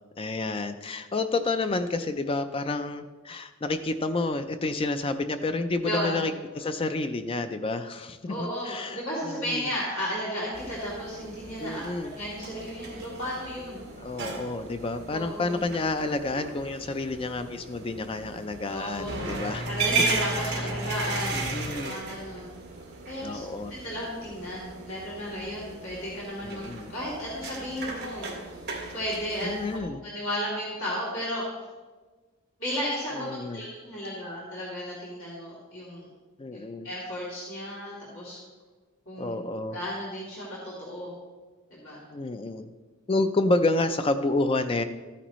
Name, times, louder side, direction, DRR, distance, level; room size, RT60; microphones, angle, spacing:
voice 1, 0.2-9.7 11.6-12.1 13.9-19.7 20.4-20.7 21.3-22.0 23.2-23.7 26.4-26.9 29.4-30.0 33.2-33.6 36.4-36.9 39.2-39.8 42.1-42.7 43.1-44.8, left 2 dB, 25° left, 10 dB, 0.4 m, -29 dB
voice 2, 5.8-6.2 8.3-11.9 12.2-13.8 15.1-15.6 18.7-22.5 23.1-23.4 23.7-26.6 26.9-28.6 28.9-31.4 32.6-36.1 36.8-38.4 39.1-39.4 39.7-41.1 41.7-42.0, equal, 65° left, -7 dB, 2.9 m, -34 dB
sound 1, 10.5-29.8, right 3 dB, 50° right, 2.0 m, -35 dB
14.0 x 10.0 x 3.1 m, 1.3 s
head